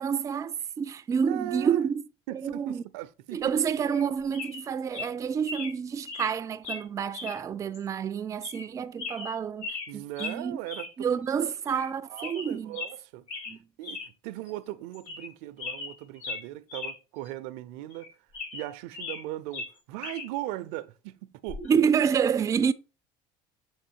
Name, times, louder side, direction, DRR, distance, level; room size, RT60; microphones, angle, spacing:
voice 1, 0.0-2.0 2.3-2.8 3.3-10.6 11.0-12.8 13.5-13.6 21.6-22.7, right 7 dB, 25° right, 0.4 m, -28 dB
voice 2, 1.3-1.8 2.3-3.5 9.9-10.9 12.0-13.3 13.8-18.1 18.5-21.6, right 15 dB, 80° right, 0.5 m, -38 dB
sound 1, 3.9-4.1 4.3-4.6 4.9-5.1 5.5-5.7 6.1-6.3 6.6-6.8 7.1-7.4 7.7-7.8 8.4-8.7 9.0-9.9 10.2-10.4 10.7-10.9 11.2-11.3 11.7-11.9 12.2-12.9 13.3-13.6 13.8-14.1 14.5-14.6 14.9-15.3 15.6-17.0 17.3-17.4 17.9-19.2 19.5-20.3 21.5-21.7, left 4 dB, 60° left, 3.6 m, -38 dB
7.1 x 3.1 x 4.4 m
supercardioid pair, 115°, 13 cm